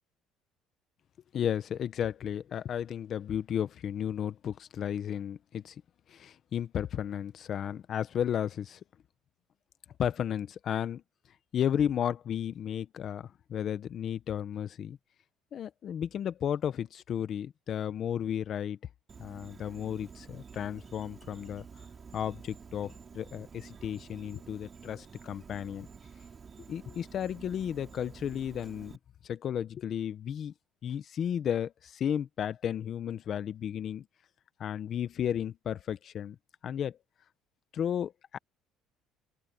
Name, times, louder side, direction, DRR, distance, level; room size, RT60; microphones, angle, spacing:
voice 1, 1.3-5.8 6.1-8.8 10.0-11.0 11.5-15.0 15.5-18.8 19.2-21.6 22.1-25.9 26.7-29.0 29.2-30.5 30.8-34.1 34.6-36.4 36.6-37.0 37.7-38.4, left 9 dB, 40° left, 0.9 m, -33 dB
Insect, 19.1-29.0, right 6 dB, 25° right, 4.2 m, -50 dB
open air
cardioid pair, 155°, 0 cm